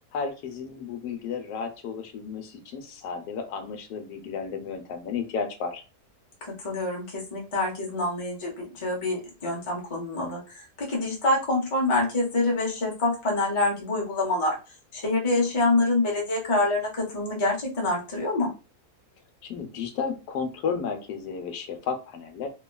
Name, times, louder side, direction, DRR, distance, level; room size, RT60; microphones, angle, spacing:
voice 1, 0.1-5.8 19.4-22.5, left 6 dB, 85° left, 6 dB, 1.1 m, -33 dB
voice 2, 6.4-14.6 14.9-18.5, left 2 dB, 30° left, -1 dB, 0.5 m, -26 dB
2.9 x 2.3 x 2.2 m, 0.31 s
omnidirectional pair, 1.6 m